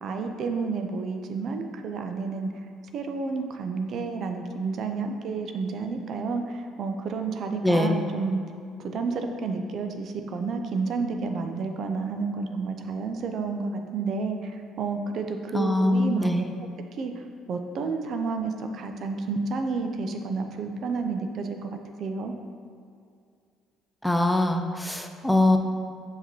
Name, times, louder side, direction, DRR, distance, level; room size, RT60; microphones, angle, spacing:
voice 1, 0.0-2.5 2.9-8.4 8.8-16.5 17.0-17.1 17.5-22.3, right 4 dB, 60° right, 6 dB, 0.5 m, -30 dB
voice 2, 7.6-8.0 15.5-16.5 24.0-25.6, left 2 dB, 5° left, 5 dB, 0.5 m, -23 dB
5.7 x 5.6 x 3.0 m, 2.3 s
supercardioid pair, 65°, 0 cm